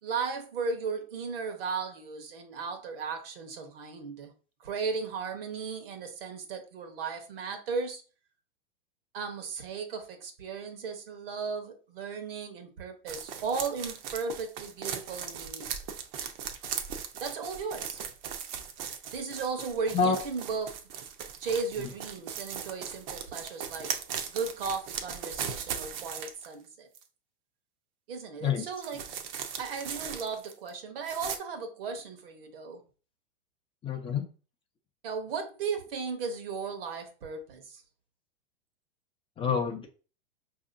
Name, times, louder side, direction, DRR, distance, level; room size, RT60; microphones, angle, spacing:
voice 1, 0.0-4.3 4.6-8.0 9.1-15.7 17.2-18.0 19.1-20.8 21.4-23.9 24.3-26.9 28.1-29.1 29.6-32.8 35.0-37.8, right 5 dB, 70° right, 1.0 m, -36 dB
sound 1, 13.1-26.5 26.9-27.0 28.8-30.7 31.0-31.4, right 8 dB, 50° right, 0.6 m, -38 dB
voice 2, 33.8-34.3 39.4-39.9, left 6 dB, 20° left, 0.4 m, -27 dB
4.9 x 2.8 x 2.5 m
hypercardioid pair, 110°, 29 cm